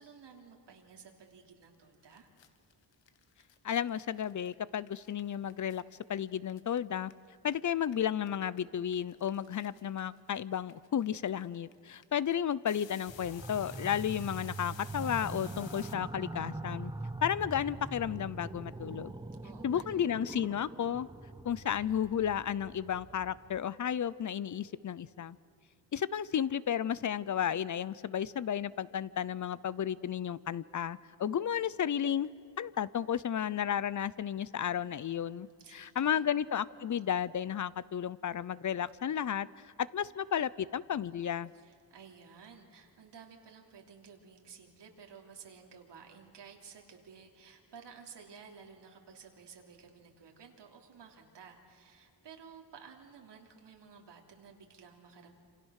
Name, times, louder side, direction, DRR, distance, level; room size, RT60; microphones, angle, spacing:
voice 1, 0.0-2.3 19.4-20.0 35.6-36.2 41.5-55.3, right 6 dB, 70° right, 1 dB, 3.4 m, -54 dB
sound 1, 1.7-1.8 2.0-7.5 7.8-15.9, left 9 dB, 85° left, 1.6 m, -55 dB
voice 2, 3.6-5.8 6.1-7.1 7.4-16.9 17.2-19.1 19.6-21.1 21.4-25.4 25.9-32.3 32.6-39.5 39.8-41.5, left 9 dB, 45° left, 19 dB, 0.6 m, -33 dB
sound 2, 13.1-23.6, right 2 dB, 10° right, 1.1 m, -43 dB
27.5 x 27.5 x 6.5 m, 2.4 s
wide cardioid pair, 145°, 44 cm